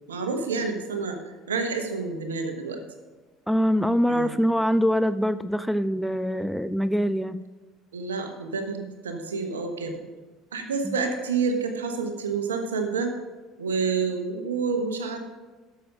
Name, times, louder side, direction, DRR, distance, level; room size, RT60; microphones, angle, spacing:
voice 1, 0.1-1.2 1.5-2.8 4.1-4.4 7.9-10.0 10.5-13.1 13.6-15.2, right 4 dB, 80° right, 6 dB, 1.1 m, -28 dB
voice 2, 3.5-7.4 10.8-10.9, equal, ahead, 13 dB, 0.4 m, -24 dB
12.0 x 7.1 x 5.2 m, 1.2 s
figure-of-eight pair, 60°, 0 cm